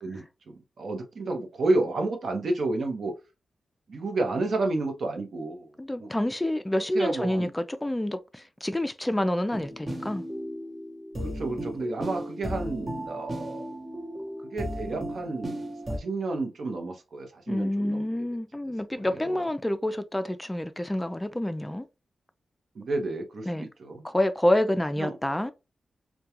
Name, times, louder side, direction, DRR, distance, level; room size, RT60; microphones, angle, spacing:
voice 1, 0.0-3.1 3.9-5.7 6.0-6.1 6.9-7.5 11.2-13.7 14.5-18.0 18.9-19.4 22.7-24.0 25.0-25.2, right 2 dB, 70° right, 0.7 m, -31 dB
voice 2, 5.8-10.2 17.5-21.8 23.5-23.7 24.0-25.5, left 1 dB, 15° left, 0.3 m, -28 dB
sound 1, 9.5-16.0, equal, 35° right, 0.8 m, -35 dB
2.3 x 2.2 x 2.8 m
cardioid pair, 55°, 0 cm